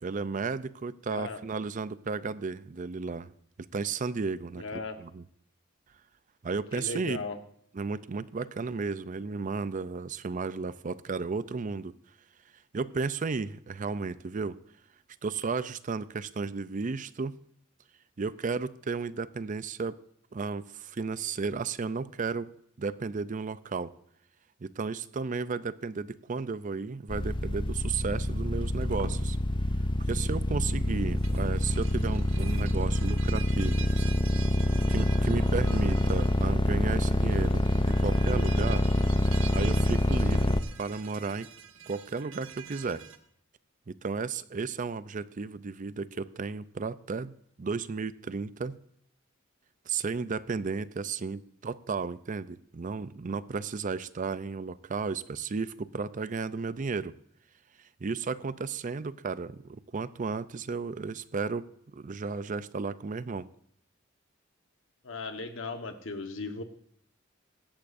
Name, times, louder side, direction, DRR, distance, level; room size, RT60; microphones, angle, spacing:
voice 1, 0.0-3.3 3.7-5.2 6.4-7.2 7.7-11.9 12.7-14.6 15.2-17.4 18.2-20.0 20.3-22.5 22.8-23.9 24.6-29.4 30.1-33.9 34.9-38.9 39.5-41.5 41.9-43.0 43.9-48.8 49.9-57.1 58.0-63.5, right 4 dB, 40° right, 15 dB, 0.5 m, -34 dB
voice 2, 4.6-5.0 6.8-7.4 65.0-66.6, left 3 dB, 70° left, 6 dB, 1.2 m, -37 dB
sound 1, 27.1-40.6, left 1 dB, 25° left, 0.6 m, -26 dB
sound 2, 28.4-29.2 31.1-43.2, right 8 dB, 85° right, 1.3 m, -46 dB
17.5 x 13.5 x 2.6 m, 0.66 s
head